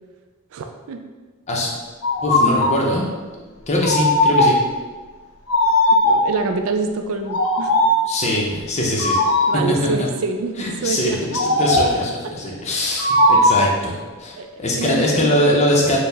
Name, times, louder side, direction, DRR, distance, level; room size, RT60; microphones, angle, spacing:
voice 1, 0.5-1.0 5.9-7.9 9.5-11.4 12.2-12.3 14.4-15.5, right 4 dB, 65° right, 6 dB, 0.3 m, -26 dB
sound 1, 2.0-2.9 3.8-4.7 5.5-6.4 7.3-8.1 9.0-9.7 11.3-12.1 13.0-13.8, left 1 dB, 90° left, 0.5 m, -17 dB
voice 2, 2.2-3.0 3.7-4.6 8.1-9.2 10.0-10.1 10.6-11.1 11.6-16.0, left 1 dB, 30° left, -2 dB, 0.6 m, -21 dB
4.4 x 2.1 x 3.3 m, 1.3 s
head